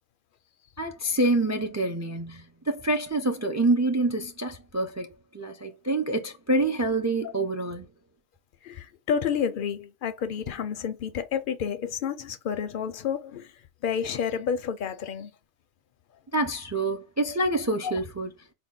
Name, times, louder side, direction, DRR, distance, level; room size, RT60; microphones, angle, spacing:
voice 1, 0.8-5.1 5.3-7.8 16.3-18.3, right 2 dB, 30° right, 0.3 m, -26 dB
voice 2, 8.6-13.5 13.8-15.3 17.3-17.4 17.8-17.9, left 7 dB, 60° left, 0.6 m, -30 dB
4.4 x 2.3 x 3.7 m
omnidirectional pair, 1.2 m